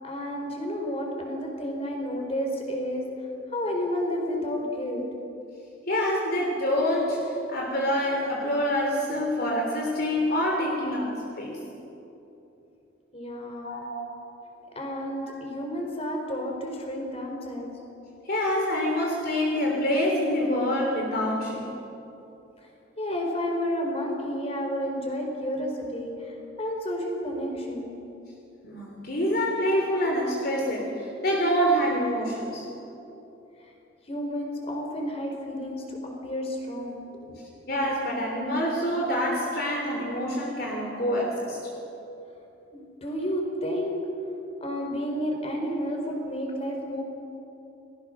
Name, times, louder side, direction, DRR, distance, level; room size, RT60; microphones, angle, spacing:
voice 1, 0.0-3.1 3.5-5.0 13.1-13.8 14.7-17.7 22.6-22.7 23.0-27.9 34.0-37.3 42.7-44.0 44.6-47.0, equal, 30° left, 1 dB, 4.5 m, -31 dB
voice 2, 5.9-11.6 13.6-14.1 15.2-15.3 18.2-21.7 28.6-32.6 37.7-41.6, equal, 50° left, -1 dB, 3.4 m, -26 dB
30.0 x 20.0 x 6.6 m, 2.9 s
head